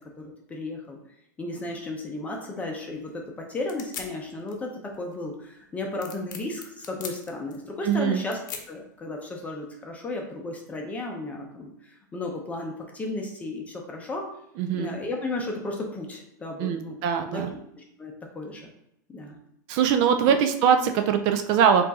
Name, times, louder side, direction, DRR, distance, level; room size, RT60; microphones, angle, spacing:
voice 1, 0.5-1.0 1.4-8.4 8.7-14.3 14.7-17.0 17.3-17.4 17.8-18.7 19.1-19.4 20.3-20.4, left 2 dB, 15° left, 1 dB, 0.6 m, -34 dB
sound 1, 1.6-9.7, left 6 dB, 85° left, 0.8 m, -44 dB
voice 2, 7.8-8.2 14.6-14.9 16.6-17.5 19.7-21.9, right 7 dB, 45° right, 7 dB, 0.4 m, -22 dB
4.4 x 2.6 x 4.1 m, 0.78 s
supercardioid pair, 135°, 10 cm